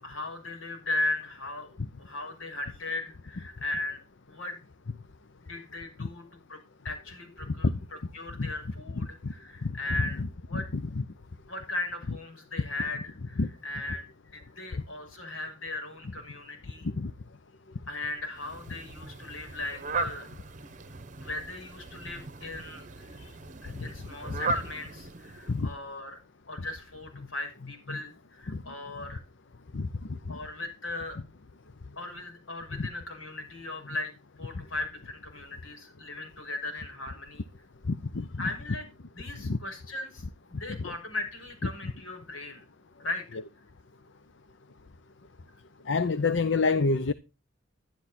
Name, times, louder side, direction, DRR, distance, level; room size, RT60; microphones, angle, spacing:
voice 1, 0.0-4.6 5.4-6.2 6.5-6.6 6.8-7.7 8.1-10.2 10.5-10.7 11.5-16.9 17.9-20.3 21.2-23.2 23.6-26.2 26.5-29.2 30.3-31.2 32.0-37.5 38.4-38.9 39.1-40.2 40.5-42.7 43.0-43.2, left 2 dB, 85° left, 6.2 m, -37 dB
voice 2, 9.6-10.3 10.5-11.0 13.4-13.5 17.0-17.1 23.8-23.9 25.5-25.7 27.9-28.0 28.5-28.6 29.7-29.9 30.3-30.4 32.7-32.9 37.9-38.4 39.4-39.6 40.8-40.9 45.9-47.1, left 3 dB, 65° left, 0.7 m, -28 dB
Fowl, 18.4-25.7, right 3 dB, 40° right, 0.9 m, -37 dB
12.5 x 11.0 x 4.3 m
head